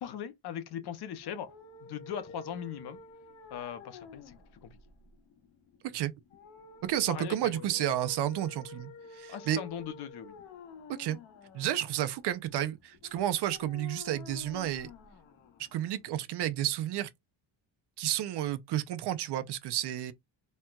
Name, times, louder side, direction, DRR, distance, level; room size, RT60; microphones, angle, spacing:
voice 1, 0.0-1.5 1.8-3.0 3.5-4.8 7.1-7.8 9.3-10.3, left 9 dB, 55° left, 0.7 m, -40 dB
sound 1, 1.2-16.2, left 5 dB, 75° left, 1.0 m, -50 dB
voice 2, 6.8-9.6 11.0-11.2 11.5-14.9 15.7-17.1 18.0-20.1, right 12 dB, 60° right, 0.5 m, -31 dB
4.2 x 2.2 x 2.2 m
cardioid pair, 165°, 47 cm